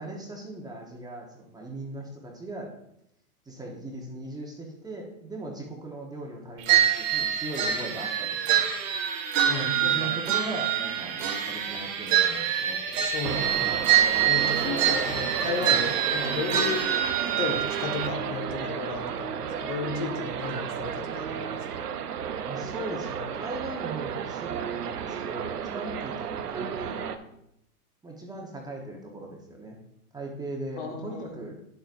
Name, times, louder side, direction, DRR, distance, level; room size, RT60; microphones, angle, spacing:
voice 1, 0.0-2.7 3.4-8.7 9.8-13.1 22.4-27.2 28.0-29.8 30.1-31.5, right 2 dB, 10° right, -1 dB, 1.2 m, -39 dB
sound 1, 6.7-18.1, right 9 dB, 55° right, 1.4 m, -25 dB
voice 2, 9.4-10.1 13.0-13.9 14.2-17.0 17.3-21.8 30.8-31.4, left 4 dB, 50° left, 3 dB, 1.8 m, -34 dB
sound 2, 13.2-27.2, right 8 dB, 85° right, 0.9 m, -33 dB
10.0 x 7.1 x 2.6 m, 0.78 s
hypercardioid pair, 115°, 45 cm